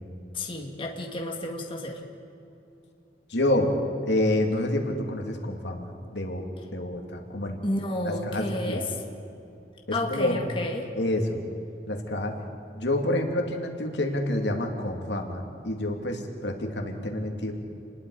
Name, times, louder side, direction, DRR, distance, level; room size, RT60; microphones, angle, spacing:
voice 1, 0.3-2.0 7.6-8.9 9.9-10.9, left 1 dB, 30° left, 1 dB, 2.0 m, -31 dB
voice 2, 3.3-3.7 4.0-6.5 6.7-7.6 8.0-8.9 9.9-10.5 11.0-11.4 11.9-12.3 12.7-17.5, left 1 dB, 85° left, 2 dB, 2.6 m, -28 dB
28.5 x 20.5 x 4.9 m, 2.8 s
head